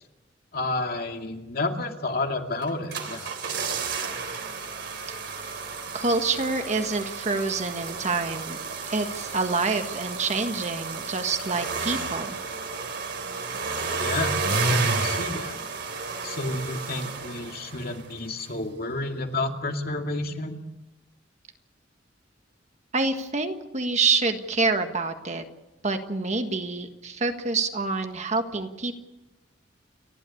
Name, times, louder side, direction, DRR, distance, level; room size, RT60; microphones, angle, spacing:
voice 1, 0.5-3.6 13.9-15.5 16.2-20.6, left 2 dB, 55° left, 3 dB, 2.3 m, -31 dB
sound 1, 2.6-18.1 18.4-18.5, right 4 dB, 65° right, 3.4 m, -31 dB
voice 2, 5.9-8.6 8.9-12.4 22.9-25.4 25.8-29.0, right 3 dB, 40° right, 6 dB, 1.6 m, -27 dB
30.0 x 12.0 x 8.6 m, 1.0 s
head